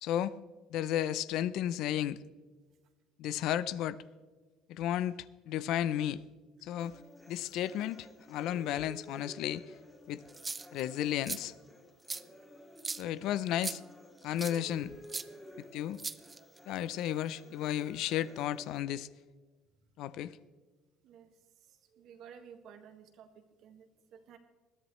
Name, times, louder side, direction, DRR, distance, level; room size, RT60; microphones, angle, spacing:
voice 1, 0.0-0.4 0.7-2.2 3.2-4.0 4.7-5.1 5.5-6.2 6.6-7.0 7.3-9.6 10.1-10.2 10.7-11.5 13.0-13.8 14.2-14.9 15.7-16.0 16.7-19.1 20.0-20.4, left 11 dB, 65° left, 17 dB, 0.5 m, -33 dB
sound 1, 6.8-18.8, left 1 dB, 5° left, 2.3 m, -54 dB
sound 2, 10.3-10.8 11.2-11.4 12.1-12.2 12.8-13.0 13.6-13.8 14.4-14.6 15.1-15.2 16.0-16.6, right 3 dB, 15° right, 0.5 m, -38 dB
voice 2, 21.7-24.4, right 7 dB, 55° right, 6 dB, 1.7 m, -54 dB
21.0 x 14.0 x 3.2 m, 1.4 s
cardioid pair, 155°, 0 cm